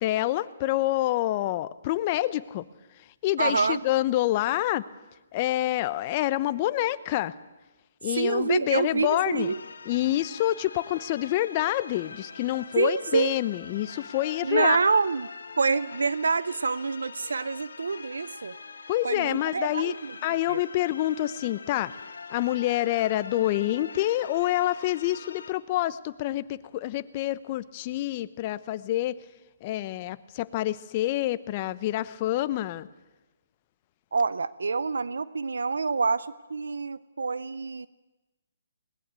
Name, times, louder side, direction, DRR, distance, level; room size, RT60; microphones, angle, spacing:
voice 1, 0.0-2.6 3.2-4.8 5.3-7.3 8.0-9.5 9.9-14.8 18.9-19.9 20.2-21.9 22.3-29.2 29.6-32.9, left 15 dB, 35° left, 16 dB, 0.8 m, -27 dB
voice 2, 3.4-3.8 8.1-9.6 12.8-13.4 14.4-15.3 15.6-18.6 19.0-20.6 34.1-37.9, right 4 dB, 80° right, 17 dB, 0.7 m, -27 dB
sound 1, 9.4-25.5, left 4 dB, 75° left, 2.1 m, -44 dB
20.5 x 19.0 x 8.3 m, 1.1 s
hypercardioid pair, 150°, 0 cm